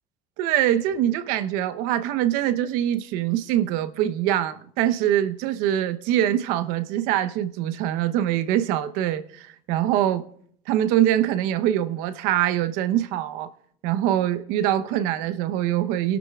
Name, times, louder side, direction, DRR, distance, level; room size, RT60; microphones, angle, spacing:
voice 1, 0.4-10.2 10.7-13.5 13.8-16.2, right 12 dB, 70° right, 0.9 m, -23 dB
29.0 x 12.5 x 2.4 m
supercardioid pair, 95°, 15 cm